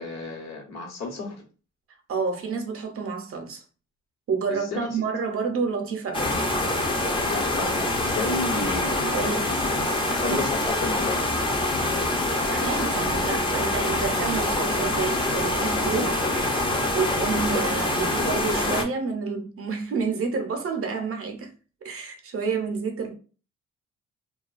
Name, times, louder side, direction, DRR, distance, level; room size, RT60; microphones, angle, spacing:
voice 1, 0.0-1.4 4.5-4.9 7.2-9.1 10.2-11.3, left 3 dB, 60° left, 1.0 m, -32 dB
voice 2, 2.1-3.6 4.3-6.4 9.0-9.8 10.2-10.4 12.5-16.2 16.9-21.5 21.8-23.1, right 5 dB, 50° right, 0.6 m, -29 dB
sound 1, 6.1-18.8, left 2 dB, 15° left, 0.5 m, -25 dB
2.3 x 2.2 x 2.4 m
cardioid pair, 90°, 30 cm